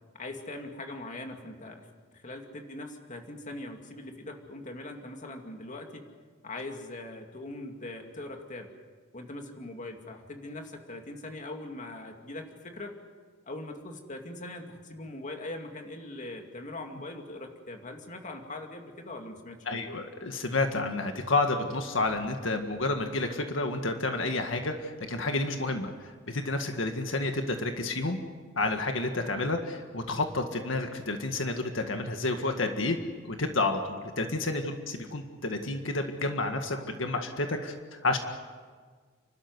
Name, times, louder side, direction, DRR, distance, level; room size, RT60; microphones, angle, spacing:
voice 1, 0.1-1.9 2.1-6.1 6.4-8.7 9.1-12.9 13.5-19.8, left 2 dB, 40° left, 3 dB, 2.4 m, -41 dB
voice 2, 19.7-25.9 26.3-28.2 28.6-33.0 33.2-38.2, left 2 dB, 80° left, 5 dB, 1.8 m, -30 dB
30.0 x 13.0 x 9.6 m, 1.5 s
head